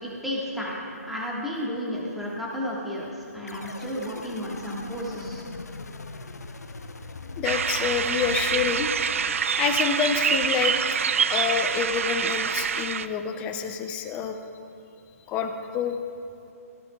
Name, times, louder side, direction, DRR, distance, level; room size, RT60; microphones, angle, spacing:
voice 1, 0.0-5.4, equal, ahead, -6 dB, 1.6 m, -32 dB
sound 1, 3.5-9.9, left 3 dB, 90° left, 0.7 m, -40 dB
voice 2, 7.4-8.9 9.6-11.0 11.3-14.4 15.3-16.0, left 7 dB, 15° left, 7 dB, 0.5 m, -28 dB
sound 2, 7.4-13.1, right 7 dB, 55° right, 0.4 m, -26 dB
16.0 x 11.0 x 2.3 m, 2.7 s
hypercardioid pair, 150°, 8 cm